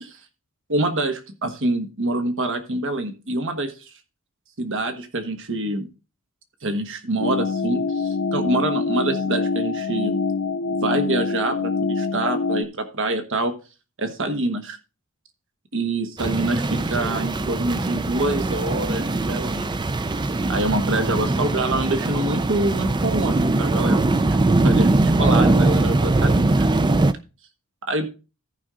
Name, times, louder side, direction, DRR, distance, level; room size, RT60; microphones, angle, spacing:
voice 1, 0.7-3.7 4.6-5.9 6.6-10.2 10.8-13.5 14.0-14.8 15.7-19.7 20.5-24.0 24.3-26.7 27.9-28.1, right 2 dB, 60° right, 6 dB, 1.3 m, -26 dB
sound 1, 7.2-12.6, left 4 dB, 65° left, 0.7 m, -25 dB
sound 2, 16.2-27.1, right 2 dB, 20° right, 0.4 m, -21 dB
14.0 x 5.4 x 3.7 m, 0.32 s
head